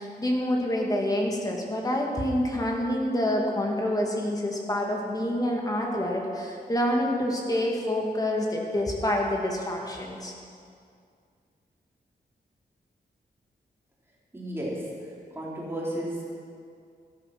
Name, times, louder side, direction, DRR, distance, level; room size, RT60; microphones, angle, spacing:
voice 1, 0.0-10.3, left 1 dB, 20° left, -1 dB, 2.2 m, -27 dB
voice 2, 14.3-14.8 15.3-16.2, right 1 dB, 15° right, -6 dB, 3.7 m, -32 dB
13.0 x 12.5 x 6.0 m, 2.3 s
wide cardioid pair, 140°, 17 cm